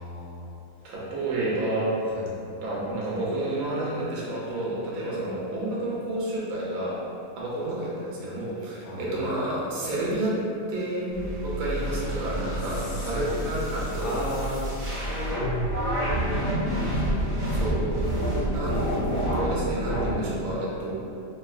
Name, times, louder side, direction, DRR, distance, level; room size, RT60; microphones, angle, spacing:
voice 1, 0.0-0.9 2.1-2.3 8.8-9.2 12.6-13.5 13.9-14.6 15.0-15.5 15.9-17.1 17.5-17.7, left 1 dB, 70° left, -6 dB, 1.1 m, -36 dB
voice 2, 0.8-2.0 2.6-7.0 7.4-10.4 10.7-14.2 17.5-18.1 18.5-18.9 19.3-20.9, right 1 dB, 70° right, -6 dB, 1.0 m, -30 dB
sound 1, 11.1-20.1, equal, 45° right, 0.6 m, -28 dB
3.0 x 2.6 x 2.3 m, 2.6 s
omnidirectional pair, 1.6 m